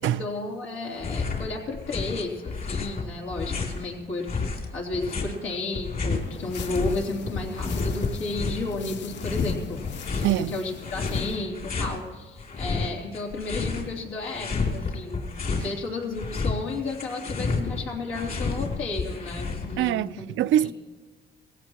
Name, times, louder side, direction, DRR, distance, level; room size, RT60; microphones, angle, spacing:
voice 1, 0.0-9.8 10.1-20.3 20.6-20.7, left 3 dB, 90° left, 3.2 m, -33 dB
sound 1, 0.9-1.5 1.7-3.8 4.3-7.0 7.2-8.7 9.2-10.3 10.8-12.0 12.4-13.9 14.2-15.7 16.0-19.9, left 4 dB, 50° left, 2.9 m, -30 dB
sound 2, 6.1-11.4, left 9 dB, 65° left, 0.6 m, -41 dB
voice 2, 10.2-10.5 19.8-20.7, right 12 dB, 75° right, 0.4 m, -24 dB
18.0 x 16.5 x 3.0 m
cardioid pair, 90°, 20 cm